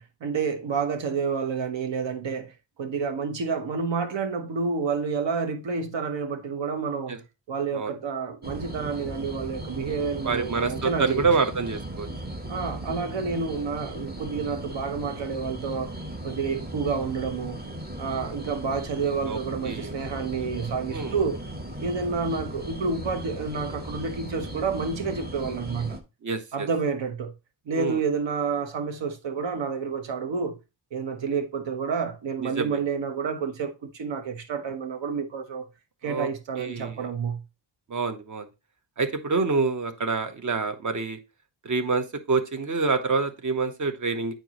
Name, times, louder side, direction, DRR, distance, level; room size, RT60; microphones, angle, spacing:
voice 1, 0.0-2.5 2.8-7.2 7.5-11.3 12.5-15.9 16.2-17.6 18.0-21.4 21.8-26.0 26.5-27.3 27.7-30.6 30.9-35.7 36.0-37.4, right 5 dB, 70° right, 1.2 m, -29 dB
sound 1, 8.4-26.0, right 1 dB, 20° right, 1.2 m, -37 dB
voice 2, 10.2-12.1 19.3-19.4 19.6-19.9 20.9-21.2 26.2-26.7 27.8-28.0 32.4-32.8 36.1-36.3 36.6-37.0 37.9-38.5 39.0-41.2 41.6-44.3, right 4 dB, 40° right, 1.1 m, -27 dB
9.0 x 4.6 x 3.0 m
wide cardioid pair, 110°, 46 cm